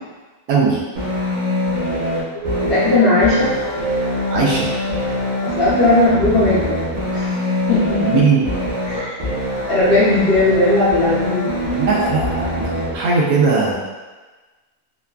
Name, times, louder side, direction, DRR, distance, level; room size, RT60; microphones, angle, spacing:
voice 1, 0.5-0.8 4.3-4.7 8.0-8.5 11.7-13.7, right 4 dB, 80° right, -3 dB, 1.1 m, -18 dB
sound 1, 1.0-13.0, left 1 dB, 45° right, 0.6 m, -23 dB
Keyboard (musical), 2.4-5.3, right 1 dB, 85° left, 1.1 m, -29 dB
voice 2, 2.6-3.5 5.4-6.7 7.1-7.3 7.7-8.2 8.9-9.2 9.7-11.5, left 2 dB, 60° left, -10 dB, 0.6 m, -17 dB
2.9 x 2.3 x 2.2 m, 1.3 s
omnidirectional pair, 1.6 m